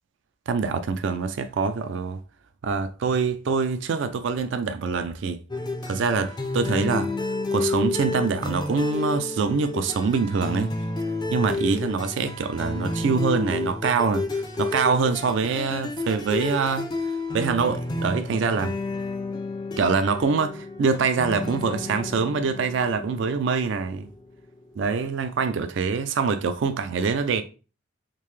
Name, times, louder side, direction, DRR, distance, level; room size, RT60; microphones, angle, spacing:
voice 1, 0.5-2.2 2.6-5.4 5.9-7.1 7.5-10.7 11.3-16.9 17.3-18.8 19.8-24.1 24.8-27.4, right 5 dB, 65° right, 0.3 m, -24 dB
sound 1, 5.5-24.9, left 2 dB, 20° left, 0.3 m, -31 dB
3.7 x 2.7 x 3.1 m
head